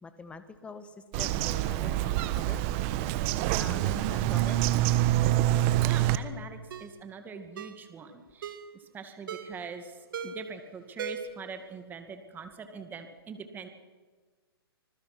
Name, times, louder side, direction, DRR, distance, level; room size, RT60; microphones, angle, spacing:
voice 1, 0.0-2.6 3.5-4.6, left 4 dB, 10° left, 11 dB, 1.6 m, -44 dB
Bird vocalization bird call bird song, 1.1-6.2, right 14 dB, 35° right, 1.3 m, -26 dB
Ringtone, 5.0-5.2 5.8-6.1 6.7-7.0 7.6-7.8 8.4-8.7 9.3-9.6 10.1-10.5 11.0-11.4 11.7-11.8, right 6 dB, 55° right, 2.3 m, -39 dB
voice 2, 5.8-13.7, right 5 dB, 15° right, 7 dB, 2.2 m, -43 dB
26.0 x 21.0 x 6.1 m, 1.4 s
hypercardioid pair, 135°, 13 cm